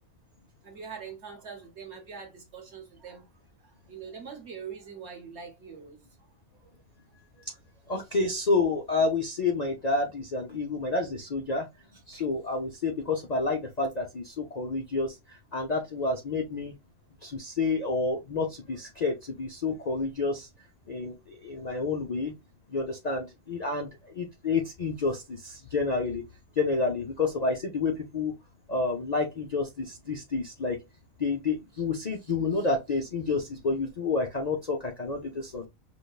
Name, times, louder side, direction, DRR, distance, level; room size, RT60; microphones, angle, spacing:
voice 1, 0.6-3.3 3.6-6.3 7.3-7.4, right 6 dB, 55° right, 1.2 m, -43 dB
voice 2, 7.9-11.7 12.1-16.7 17.2-20.5 20.9-22.3 22.7-26.2 26.6-28.4 28.7-30.8 31.2-35.7, left 3 dB, 45° left, 0.5 m, -29 dB
5.2 x 2.1 x 2.3 m
omnidirectional pair, 1.5 m